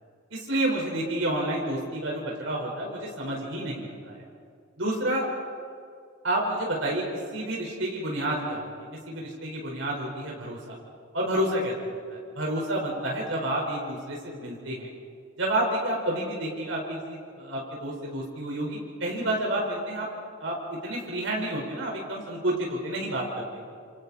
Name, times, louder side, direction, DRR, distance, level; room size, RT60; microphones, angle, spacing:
voice 1, 0.3-4.2 4.8-5.3 6.2-8.7 9.1-10.8 11.1-11.7 12.1-14.9 15.4-20.1 20.4-20.5 20.8-23.6, right 1 dB, 70° right, -2 dB, 4.8 m, -29 dB
29.5 x 28.0 x 4.3 m, 2.3 s
head